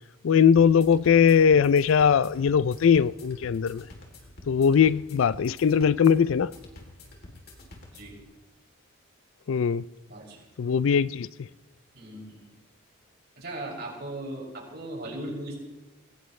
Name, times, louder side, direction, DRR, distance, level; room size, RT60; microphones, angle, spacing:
voice 1, 0.2-3.9 4.5-6.5 9.5-9.9 10.6-11.5, left 7 dB, 70° left, 0.4 m, -20 dB
sound 1, 0.6-8.2, left 1 dB, 50° left, 3.1 m, -48 dB
voice 2, 10.1-10.5 11.9-12.5 13.4-15.6, right 1 dB, 50° right, 6.6 m, -38 dB
21.5 x 18.5 x 3.2 m
head